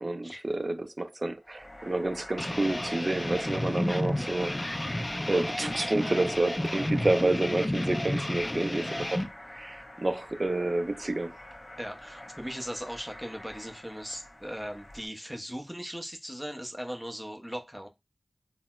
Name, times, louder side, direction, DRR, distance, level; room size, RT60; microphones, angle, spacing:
voice 1, 0.0-4.6 4.9-5.0 5.3-11.3, right 2 dB, 45° right, 0.4 m, -29 dB
sound 1, 1.4-15.1, left 1 dB, 45° left, 1.0 m, -46 dB
sound 2, 2.4-9.3, left 1 dB, 25° left, 0.4 m, -31 dB
voice 2, 11.8-17.9, equal, 5° right, 0.7 m, -38 dB
3.9 x 2.0 x 2.3 m
wide cardioid pair, 70°, 0 cm